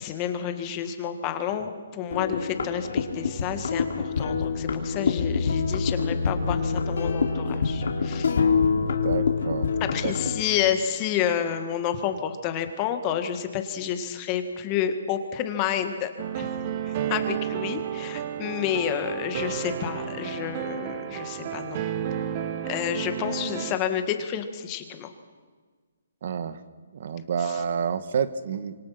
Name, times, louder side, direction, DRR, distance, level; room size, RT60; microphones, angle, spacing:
voice 1, 0.0-8.3 9.9-16.1 16.4-16.6 16.8-21.8 22.6-25.1 27.4-27.6, left 9 dB, 25° left, 8 dB, 1.9 m, -30 dB
sound 1, 2.1-10.4, left 5 dB, 70° left, 3.1 m, -26 dB
voice 2, 8.7-9.7 10.0-10.1 26.2-26.6 26.9-28.8, right 7 dB, 50° right, 12 dB, 1.4 m, -29 dB
sound 2, 16.2-23.8, right 9 dB, 30° right, 1.4 m, -32 dB
26.0 x 24.5 x 6.0 m, 1.5 s
hypercardioid pair, 160°, 0 cm